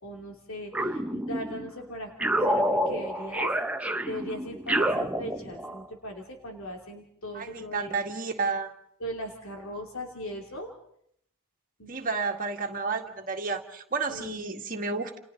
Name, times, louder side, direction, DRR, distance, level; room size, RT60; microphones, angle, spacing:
voice 1, 0.0-3.5 4.1-8.0 9.0-10.7 11.8-12.0 14.1-14.5, equal, 70° left, 1 dB, 2.9 m, -39 dB
sound 1, 0.7-1.7 2.2-5.8, right 1 dB, 5° right, 0.9 m, -28 dB
voice 2, 7.3-8.7 11.9-15.2, right 4 dB, 40° right, 3 dB, 2.0 m, -31 dB
29.5 x 29.0 x 3.9 m, 0.68 s
head